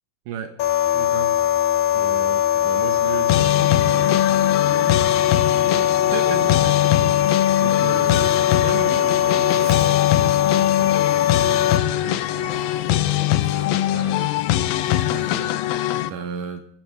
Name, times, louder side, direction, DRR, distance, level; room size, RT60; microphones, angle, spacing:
voice 1, 0.3-0.6 0.9-1.7 1.9-16.6, right 7 dB, 70° right, 6 dB, 2.4 m, -36 dB
sound 1, 0.6-11.8, left 11 dB, 65° left, 2.2 m, -20 dB
sound 2, 3.3-16.1, left 13 dB, 85° left, 2.6 m, -22 dB
Zipper (clothing), 7.2-15.4, right 1 dB, 25° right, 3.9 m, -45 dB
25.0 x 12.0 x 3.4 m, 0.67 s
omnidirectional pair, 4.1 m